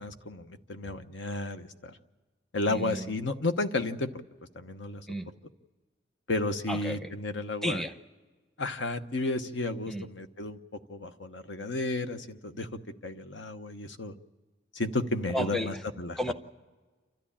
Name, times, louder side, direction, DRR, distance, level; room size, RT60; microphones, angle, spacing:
voice 1, 0.0-1.9 2.5-4.1 4.5-5.0 6.3-7.8 8.6-10.6 10.9-12.7 13.0-14.1 14.7-16.2, left 2 dB, 75° left, 9 dB, 1.0 m, -32 dB
voice 2, 2.7-3.1 5.1-5.3 6.7-7.1 7.6-7.9 9.9-10.0 15.3-15.8 16.2-16.3, equal, ahead, 9 dB, 0.7 m, -32 dB
28.5 x 13.5 x 8.6 m, 1.3 s
head